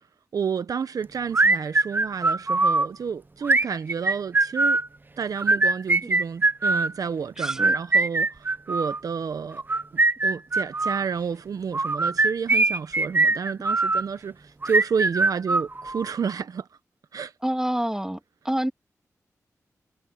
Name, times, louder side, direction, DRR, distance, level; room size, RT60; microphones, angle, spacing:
voice 1, 0.3-4.8 5.2-9.6 9.9-16.7 17.1-17.3, right 6 dB, 75° right, 0.9 m, -30 dB
sound 1, 1.3-2.9 3.4-4.9 5.4-6.9 7.4-9.0 9.6-11.0 11.7-14.0 14.6-16.1, right 3 dB, 30° right, 0.7 m, -22 dB
voice 2, 7.4-7.8 17.4-18.2 18.4-18.7, right 1 dB, 10° right, 2.4 m, -27 dB
cardioid pair, 50°, 6 cm